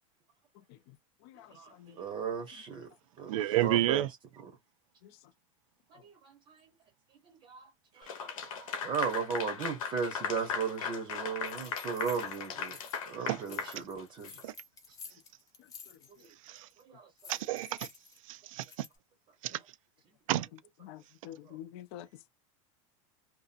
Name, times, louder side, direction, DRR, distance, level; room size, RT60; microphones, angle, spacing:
voice 1, 1.5-2.9 3.2-4.1 5.9-6.1 6.5-6.7 7.3-7.7 7.9-8.4 8.8-12.8 13.1-14.4 16.9-17.1, right 6 dB, 30° right, 0.7 m, -36 dB
voice 2, 3.3-4.1 13.3-13.4 14.4-14.5 16.5-16.7 17.3-17.9 18.3-18.9 19.4-19.6 20.3-20.5, right 15 dB, 90° right, 0.4 m, -30 dB
Clapping / Applause, 8.1-14.4, left 6 dB, 90° left, 1.0 m, -38 dB
sound 1, 11.4-13.1 13.4-16.3 16.6-16.8 17.2-18.9, left 5 dB, 20° left, 0.9 m, -51 dB
voice 3, 20.8-22.1, left 12 dB, 50° left, 0.5 m, -47 dB
2.7 x 2.4 x 2.4 m
supercardioid pair, 155°, 17 cm